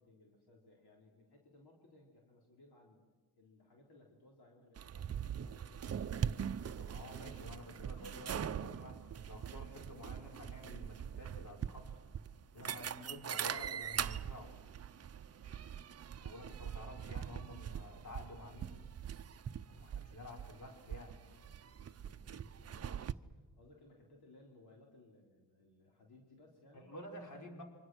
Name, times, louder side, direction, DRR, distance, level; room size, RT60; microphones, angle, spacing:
voice 1, 0.0-3.0 3.3-6.2 20.1-20.6 20.9-27.0, left 2 dB, 65° left, -1 dB, 4.1 m, -64 dB
sound 1, 4.8-23.1, right 8 dB, 35° right, 0.7 m, -42 dB
voice 2, 6.8-11.9 12.5-14.5 16.2-18.8 19.7-21.2 26.7-27.6, left 1 dB, 45° left, 1 dB, 5.3 m, -51 dB
28.0 x 25.5 x 6.4 m, 1.3 s
cardioid pair, 95°, 41 cm